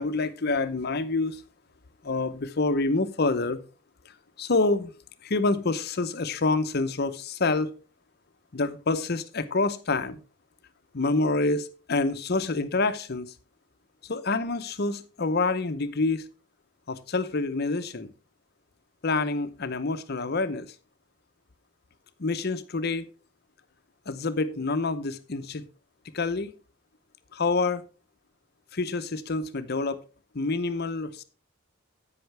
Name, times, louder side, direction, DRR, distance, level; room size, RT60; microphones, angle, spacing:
voice 1, 0.0-1.4 2.0-3.6 4.1-4.9 5.2-7.7 8.5-10.2 10.9-13.3 14.0-16.3 16.9-18.1 19.0-20.7 22.2-23.1 24.1-25.6 26.1-26.5 27.3-27.8 28.7-30.0 30.3-31.2, left 3 dB, 50° left, 0.8 m, -27 dB
16.0 x 5.7 x 3.3 m
head